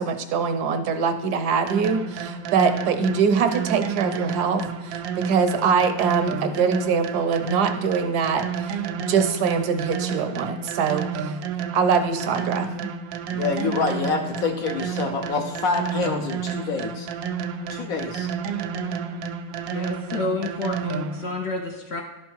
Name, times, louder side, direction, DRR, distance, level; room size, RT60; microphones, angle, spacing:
voice 1, 0.0-8.8 9.1-11.4 11.7-12.9, right 5 dB, 70° right, 8 dB, 1.2 m, -23 dB
sound 1, 1.7-21.3, right 6 dB, 90° right, 1.3 m, -31 dB
voice 2, 13.3-17.1 17.7-18.3, left 4 dB, 65° left, 3 dB, 0.9 m, -26 dB
voice 3, 19.7-22.0, left 2 dB, 80° left, 3 dB, 0.5 m, -29 dB
11.5 x 4.6 x 4.4 m, 1.1 s
omnidirectional pair, 2.0 m